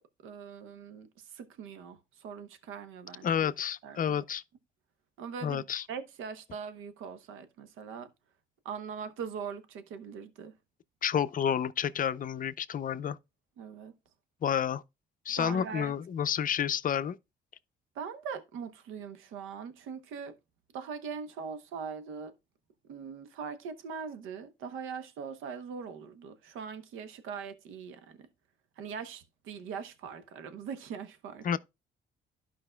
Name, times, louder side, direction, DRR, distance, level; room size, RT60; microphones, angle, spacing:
voice 1, 0.2-3.5 3.8-4.2 5.2-8.1 8.6-10.5 13.6-13.9 15.3-15.9 17.9-20.4 20.7-22.3 22.8-28.3 28.8-31.6, right 6 dB, 90° right, 0.9 m, -41 dB
voice 2, 3.2-4.4 5.4-5.8 11.0-13.2 14.4-14.8 15.3-17.2 31.4-31.6, left 8 dB, 45° left, 0.5 m, -30 dB
12.0 x 5.1 x 2.2 m
cardioid pair, 90°, 20 cm